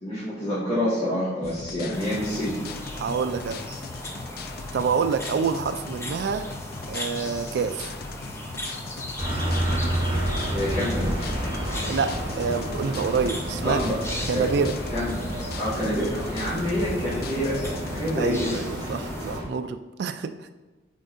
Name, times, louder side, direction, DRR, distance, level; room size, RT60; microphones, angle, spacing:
voice 1, 0.0-2.7 10.5-11.3 13.6-14.0 14.3-14.5 14.9-15.3 15.6-18.6, left 1 dB, 30° left, -10 dB, 1.7 m, -27 dB
sound 1, 1.4-18.1, left 4 dB, 60° left, 0.4 m, -40 dB
sound 2, 1.9-19.4, left 1 dB, 15° left, 0.7 m, -37 dB
voice 2, 2.9-3.7 4.7-6.5 6.9-8.0 11.8-13.9 14.3-14.8 18.2-20.5, right 5 dB, 65° right, 9 dB, 0.3 m, -27 dB
sound 3, 9.2-19.4, right 1 dB, 30° right, 1.6 m, -30 dB
8.0 x 5.1 x 2.6 m, 1.2 s
head